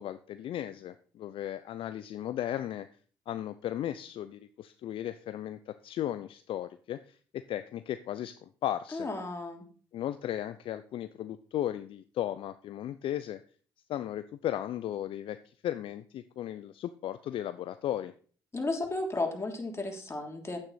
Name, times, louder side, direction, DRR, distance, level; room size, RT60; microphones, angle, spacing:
voice 1, 0.0-2.9 3.3-9.1 9.9-13.4 13.9-18.1, left 11 dB, 60° left, 12 dB, 0.5 m, -36 dB
voice 2, 8.9-9.6 18.5-20.6, left 2 dB, 25° left, 2 dB, 3.1 m, -33 dB
9.7 x 8.8 x 4.2 m, 0.42 s
hypercardioid pair, 55°, 10 cm